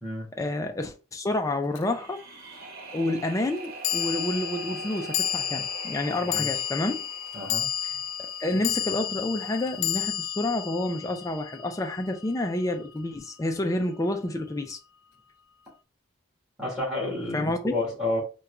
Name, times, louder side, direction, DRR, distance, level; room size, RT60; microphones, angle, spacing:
voice 1, 0.3-2.2 2.9-7.0 7.8-7.9 8.2-14.8 17.3-17.8, left 1 dB, 15° left, 0.3 m, -29 dB
sound 1, 1.7-1.8 3.8-12.3, left 10 dB, 90° left, 0.3 m, -31 dB
sound 2, 1.7-8.8, right 3 dB, 45° right, 0.8 m, -43 dB
voice 2, 7.3-7.7 16.6-18.2, left 1 dB, 5° right, 1.2 m, -30 dB
3.5 x 2.2 x 2.9 m
head